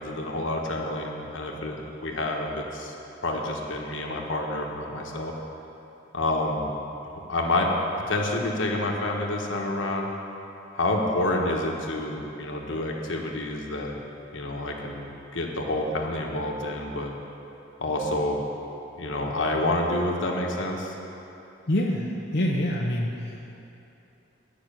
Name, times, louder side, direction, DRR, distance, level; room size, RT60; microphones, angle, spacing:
voice 1, 0.0-2.9 3.2-5.3 6.1-6.7 7.0-7.7 8.1-10.1 10.7-14.0 14.3-17.1 17.8-18.4 19.0-20.9, left 1 dB, 75° left, 0 dB, 1.3 m, -28 dB
voice 2, 21.7-23.4, left 1 dB, 50° left, -3 dB, 0.7 m, -26 dB
10.5 x 6.0 x 8.8 m, 3.0 s
head